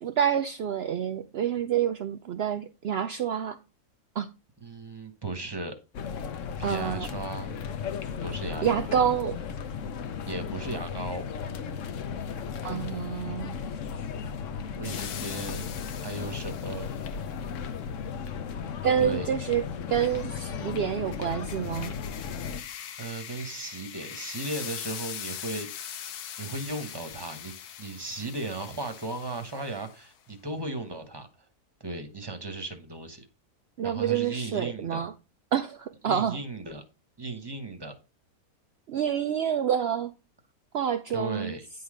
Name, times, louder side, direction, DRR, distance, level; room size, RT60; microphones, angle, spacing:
voice 1, 0.0-3.6 4.2-4.3 6.6-7.1 8.6-9.4 12.6-13.6 18.8-22.0 33.8-35.1 35.5-36.4 38.9-40.1 40.7-41.6, right 9 dB, 85° right, 0.5 m, -28 dB
voice 2, 4.6-5.8 6.6-7.6 8.2-8.7 10.3-11.3 14.8-15.7 15.9-16.9 19.0-19.3 23.0-25.7 26.4-31.3 31.8-33.3 33.8-35.0 36.1-36.8 37.2-37.9 41.1-41.7, right 2 dB, 20° right, 1.0 m, -36 dB
sound 1, 5.9-22.6, left 6 dB, 60° left, 1.0 m, -35 dB
sound 2, 14.8-17.2 21.1-30.1, left 9 dB, 85° left, 1.3 m, -41 dB
9.5 x 4.0 x 4.9 m
omnidirectional pair, 1.6 m